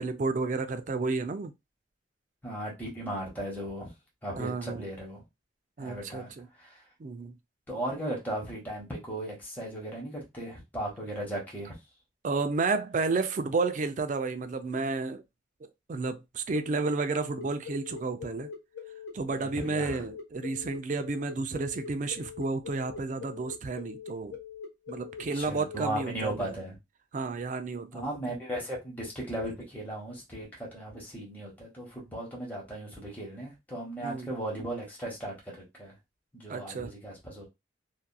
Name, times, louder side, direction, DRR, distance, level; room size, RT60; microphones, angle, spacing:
voice 1, 0.0-1.5 4.4-4.9 5.8-6.5 7.0-7.3 12.2-15.2 15.6-18.5 19.1-24.4 24.9-26.6 27.1-28.1 34.0-34.3 36.5-36.9, right 3 dB, 45° right, 0.4 m, -31 dB
voice 2, 2.4-3.9 4.2-5.2 5.8-6.3 6.6-6.8 7.7-11.7 19.3-20.0 25.3-26.8 27.9-35.9 36.3-37.5, right 1 dB, 10° left, 1.1 m, -37 dB
sound 1, 16.5-26.3, left 6 dB, 80° left, 1.0 m, -43 dB
2.8 x 2.4 x 2.2 m
head